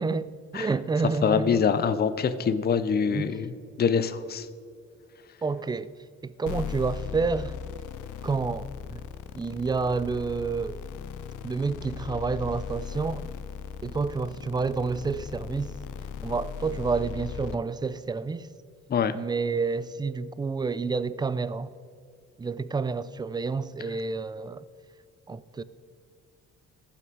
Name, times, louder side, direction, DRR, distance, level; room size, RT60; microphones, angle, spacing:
voice 1, 0.0-1.6 3.1-3.3 5.4-5.9 6.2-7.6 8.2-9.0 9.4-10.8 11.4-13.2 13.8-15.7 16.2-18.5 19.1-21.7 22.4-24.6 25.3-25.6, right 4 dB, 15° right, 0.3 m, -29 dB
voice 2, 1.2-3.5 3.8-4.5 18.9-19.2, left 6 dB, 35° left, 0.6 m, -24 dB
sound 1, 6.5-17.6, left 7 dB, 85° left, 0.6 m, -38 dB
15.0 x 5.8 x 4.7 m
cardioid pair, 90°, 30 cm